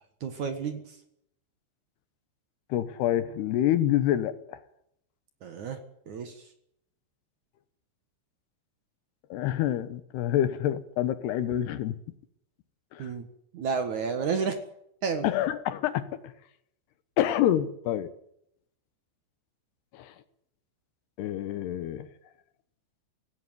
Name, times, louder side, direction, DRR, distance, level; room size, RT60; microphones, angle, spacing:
voice 1, 0.2-1.0 5.4-5.8 6.1-6.5 13.0-13.3 13.5-14.6 15.0-15.3, right 5 dB, 55° right, 2.4 m, -31 dB
voice 2, 2.7-4.6 9.3-12.0 12.9-13.1 15.2-16.2 17.2-18.1 19.9-20.1 21.2-22.1, left 12 dB, 75° left, 3.0 m, -27 dB
17.5 x 17.0 x 9.4 m
omnidirectional pair, 5.0 m